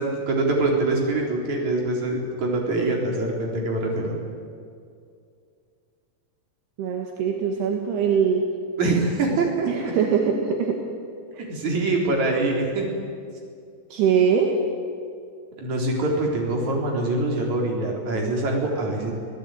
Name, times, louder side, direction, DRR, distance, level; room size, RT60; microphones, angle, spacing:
voice 1, 0.0-4.2 8.8-9.9 11.5-12.9 15.6-19.1, right 2 dB, 45° right, 0 dB, 5.1 m, -24 dB
voice 2, 6.8-8.4 9.7-10.8 11.3-11.4 13.9-14.6, right 7 dB, 75° right, 2 dB, 3.7 m, -22 dB
27.0 x 17.5 x 9.2 m, 2.3 s
omnidirectional pair, 4.8 m